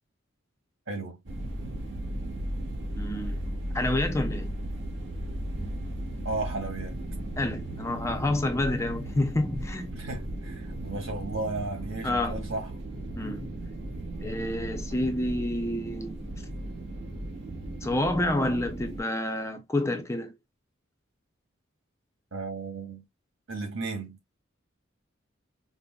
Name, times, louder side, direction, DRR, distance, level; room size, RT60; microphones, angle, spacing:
voice 1, 0.9-1.2 6.2-7.0 9.9-12.7 22.3-23.0 23.5-24.2, right 3 dB, 75° right, 2.1 m, -34 dB
sound 1, 1.3-19.0, right 1 dB, 60° right, 1.2 m, -36 dB
voice 2, 2.9-3.4 3.7-4.5 7.4-9.9 12.0-12.4 13.2-13.5 14.2-16.2 17.8-20.3, left 1 dB, 15° left, 0.5 m, -28 dB
5.2 x 2.1 x 2.2 m
head